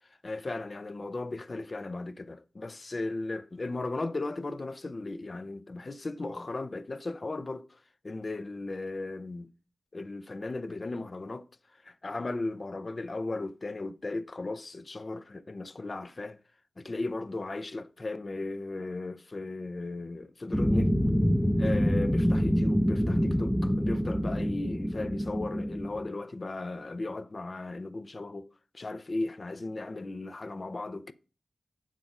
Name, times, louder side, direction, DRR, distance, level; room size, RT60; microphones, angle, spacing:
voice 1, 0.2-7.8 8.0-9.5 9.9-11.5 11.8-16.4 16.8-21.0 21.6-28.5 28.7-31.1, left 2 dB, 50° left, 0.6 m, -36 dB
sound 1, 20.5-26.1, equal, 5° left, 0.6 m, -26 dB
7.5 x 4.8 x 5.4 m
cardioid pair, 45°, 0 cm